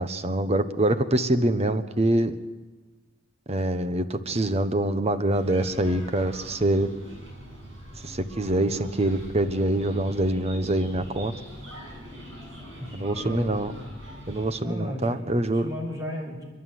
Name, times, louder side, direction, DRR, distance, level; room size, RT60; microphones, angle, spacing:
voice 1, 0.0-2.3 3.5-6.9 8.0-11.3 12.9-13.7 14.3-15.7, right 1 dB, 35° right, 11 dB, 1.2 m, -25 dB
sound 1, 5.3-14.6, equal, 80° right, 6.4 m, -43 dB
voice 2, 12.8-13.7 14.6-15.2 15.5-16.4, left 1 dB, 20° right, -1 dB, 6.3 m, -35 dB
29.0 x 11.0 x 9.4 m, 1.3 s
head